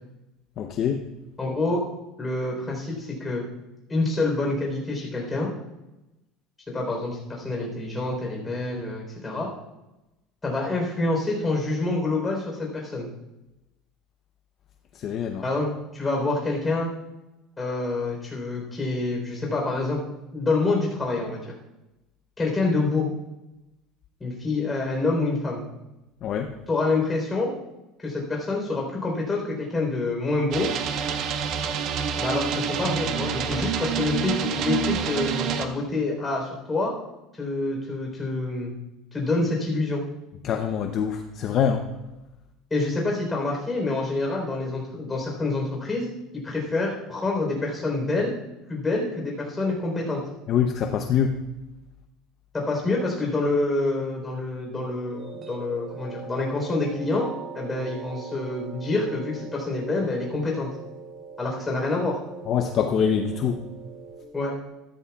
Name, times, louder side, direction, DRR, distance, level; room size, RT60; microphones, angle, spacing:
voice 1, 0.6-1.0 15.0-15.4 26.2-26.5 40.4-41.8 50.5-51.4 62.5-63.6, left 7 dB, 40° left, 5 dB, 0.7 m, -24 dB
voice 2, 1.4-1.8 2.2-3.4 3.9-5.5 6.7-9.5 10.4-13.1 15.4-16.9 17.6-20.0 20.3-21.5 22.4-23.1 24.2-25.6 26.7-27.5 28.0-30.7 32.2-36.9 37.3-38.7 39.1-40.0 42.7-46.1 46.4-48.4 48.7-50.2 52.5-57.3 57.5-60.7 61.4-62.2 64.3-64.5, left 2 dB, 15° left, -1 dB, 3.8 m, -27 dB
sound 1, 30.5-35.7, right 7 dB, 50° right, 1.0 m, -27 dB
sound 2, 55.1-64.2, right 5 dB, 25° right, 2.2 m, -41 dB
14.0 x 13.0 x 2.4 m, 0.98 s
cardioid pair, 150°, 0 cm